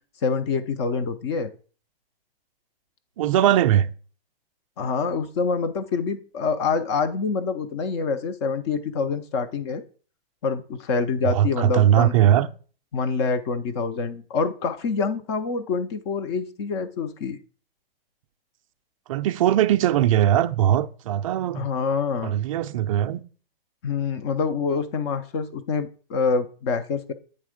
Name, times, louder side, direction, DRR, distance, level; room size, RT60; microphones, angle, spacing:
voice 1, 0.2-1.5 4.8-9.8 10.4-12.1 12.9-17.4 21.5-22.3 23.8-27.1, left 5 dB, 30° left, 0.5 m, -26 dB
voice 2, 3.2-3.9 11.2-12.5 19.1-21.7 22.2-23.2, right 11 dB, 35° right, 0.4 m, -20 dB
8.6 x 3.5 x 4.9 m
hypercardioid pair, 145°, 30 cm